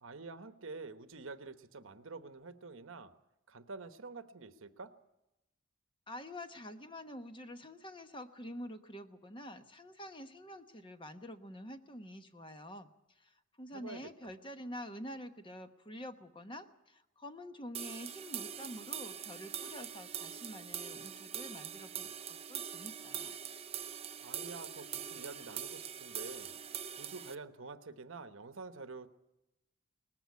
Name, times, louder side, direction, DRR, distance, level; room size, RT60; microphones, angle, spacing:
voice 1, 0.0-3.1 3.5-4.9 13.7-14.3 24.2-26.5 27.0-29.1, right 3 dB, 70° right, 10 dB, 1.1 m, -48 dB
voice 2, 6.1-23.3, equal, 25° left, 8 dB, 1.1 m, -47 dB
sound 1, 17.7-27.3, right 8 dB, 30° right, 0.7 m, -43 dB
19.5 x 15.0 x 9.6 m, 0.93 s
head